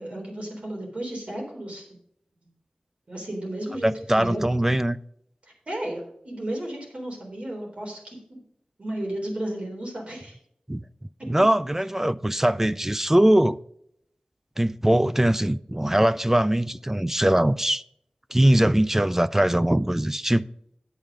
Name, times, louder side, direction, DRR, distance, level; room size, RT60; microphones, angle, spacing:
voice 1, 0.0-2.0 2.4-2.5 3.1-4.5 5.5-8.4 8.8-10.4, right 1 dB, 55° right, 3.7 m, -33 dB
voice 2, 3.8-5.0 10.7-10.8 11.3-13.6 14.6-17.8 18.3-20.5, right 1 dB, 15° right, 0.4 m, -21 dB
9.1 x 7.8 x 5.0 m
wide cardioid pair, 80°, 3 cm